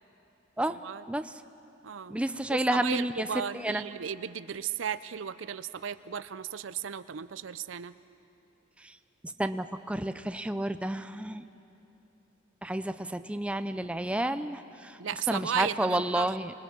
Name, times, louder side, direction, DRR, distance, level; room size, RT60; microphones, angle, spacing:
voice 1, 0.7-1.0 1.8-2.2 2.5-7.9 15.0-16.4, right 8 dB, 85° right, 14 dB, 0.6 m, -35 dB
voice 2, 2.1-3.3 3.6-3.8 9.4-11.4 12.6-15.0 15.3-16.5, right 1 dB, 5° right, 10 dB, 0.4 m, -30 dB
26.0 x 21.0 x 6.1 m, 2.9 s
head